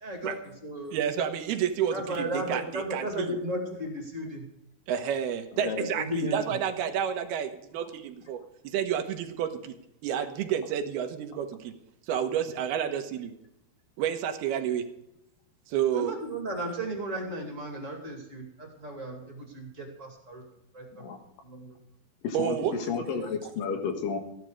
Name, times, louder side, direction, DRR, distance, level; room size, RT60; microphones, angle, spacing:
voice 1, 0.0-1.0 1.9-4.5 5.9-6.6 15.9-20.4 20.7-21.0 21.4-21.8, right 1 dB, 25° right, 1 dB, 2.1 m, -35 dB
voice 2, 0.9-3.4 4.9-9.8 10.0-11.7 12.1-13.3 14.0-14.9 15.7-16.1 22.3-22.8, right 9 dB, 90° right, 7 dB, 3.1 m, -30 dB
voice 3, 5.6-6.0 20.9-21.2 22.2-24.2, left 5 dB, 65° left, 5 dB, 3.0 m, -32 dB
15.0 x 11.5 x 4.9 m, 0.84 s
omnidirectional pair, 4.4 m